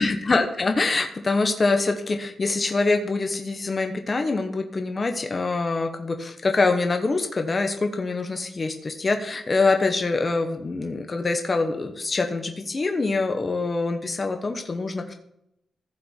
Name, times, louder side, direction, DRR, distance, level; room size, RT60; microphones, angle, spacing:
voice 1, 0.0-15.1, left 3 dB, 25° left, 5 dB, 0.9 m, -24 dB
15.0 x 5.1 x 4.4 m, 0.79 s
wide cardioid pair, 175°, 0 cm